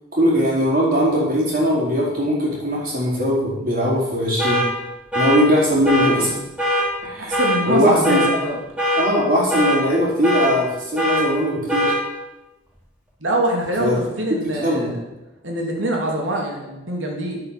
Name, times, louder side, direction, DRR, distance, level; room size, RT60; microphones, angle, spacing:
voice 1, 0.2-4.6 5.1-6.3 7.0-7.4 7.7-8.2 9.0-11.9 13.8-13.9 14.6-14.9, equal, 50° right, -5 dB, 4.6 m, -20 dB
sound 1, 4.4-4.7 5.1-5.4 5.8-6.1 6.6-6.8 7.3-7.6 8.0-8.3 8.8-9.0 9.5-9.8 10.2-10.5 11.0-11.2 11.7-12.0, equal, 5° right, 2.8 m, -20 dB
voice 2, 7.3-8.6 13.2-15.0 15.4-17.4, right 1 dB, 85° right, 0 dB, 2.9 m, -24 dB
9.5 x 8.5 x 6.8 m, 1.0 s
head